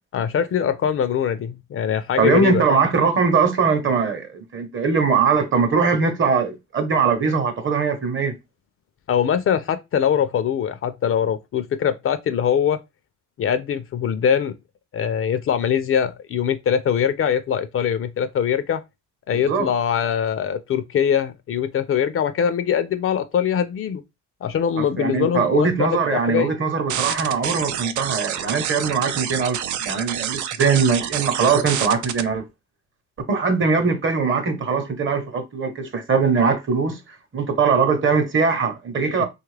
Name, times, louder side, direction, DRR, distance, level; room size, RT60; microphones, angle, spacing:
voice 1, 0.1-2.6 9.1-12.8 13.4-14.6 14.9-18.8 19.3-24.0 24.4-26.5 39.0-39.3, left 8 dB, 45° left, 0.4 m, -22 dB
voice 2, 2.2-8.4 19.3-19.7 25.0-32.4 33.3-37.0 37.3-39.3, right 5 dB, 40° right, 0.9 m, -21 dB
sound 1, 26.9-32.2, right 10 dB, 75° right, 0.4 m, -28 dB
3.1 x 2.4 x 3.2 m
cardioid pair, 90°, 30 cm